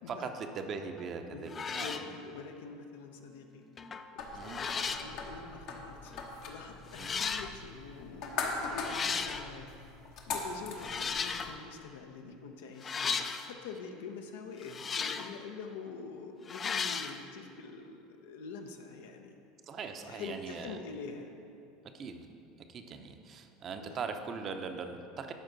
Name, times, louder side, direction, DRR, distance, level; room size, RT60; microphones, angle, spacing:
voice 1, 0.1-2.0 4.3-4.6 7.0-7.1 19.7-20.7 21.9-22.3 22.7-25.3, right 5 dB, 40° right, 6 dB, 0.6 m, -40 dB
sound 1, 1.0-1.1 1.5-2.1 3.8-4.1 4.4-5.1 6.1-6.2 6.9-7.5 8.7-9.5 10.8-11.6 12.8-13.5 14.6-15.4 16.5-17.2, left 5 dB, 30° left, 0.4 m, -35 dB
voice 2, 1.3-3.6 4.1-6.1 6.5-9.7 10.3-19.3 20.0-21.3 23.8-24.0, left 5 dB, 80° left, 4 dB, 0.7 m, -45 dB
sound 2, 4.2-11.5, left 4 dB, 65° left, 1.0 m, -41 dB
12.0 x 4.4 x 3.9 m, 2.6 s
supercardioid pair, 95°, 0 cm